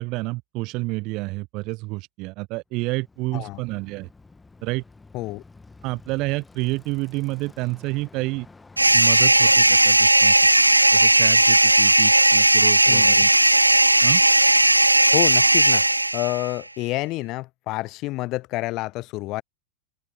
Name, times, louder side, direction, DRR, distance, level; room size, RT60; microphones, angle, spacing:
voice 1, 0.0-4.1 4.6-4.8 5.8-8.5 8.9-10.4 10.9-13.3 14.0-14.2, right 23 dB, 40° right, 0.9 m, -29 dB
Bicycle, 2.7-10.3, left 3 dB, 10° left, 1.7 m, -50 dB
sound 1, 8.8-16.5, right 1 dB, 85° right, 0.3 m, -16 dB
voice 2, 12.8-13.2 15.1-15.8 16.1-19.4, left 19 dB, 40° left, 0.4 m, -28 dB
open air
figure-of-eight pair, 90°, 0 cm